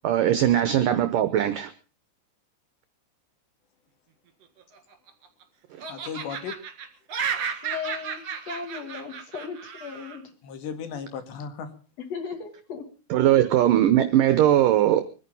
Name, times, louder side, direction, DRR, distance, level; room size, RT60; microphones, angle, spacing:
voice 1, 0.0-1.7 5.8-5.9 13.1-15.0, right 12 dB, 80° right, 12 dB, 1.9 m, -20 dB
Laughter, 4.6-5.4 5.8-10.2, right 7 dB, 50° right, 2.3 m, -33 dB
voice 2, 5.9-6.5 10.4-11.7, left 7 dB, 75° left, 8 dB, 4.1 m, -35 dB
voice 3, 7.6-10.2 12.1-12.9, left 6 dB, 45° left, 5 dB, 2.9 m, -36 dB
24.0 x 10.0 x 5.5 m, 0.37 s
omnidirectional pair, 5.1 m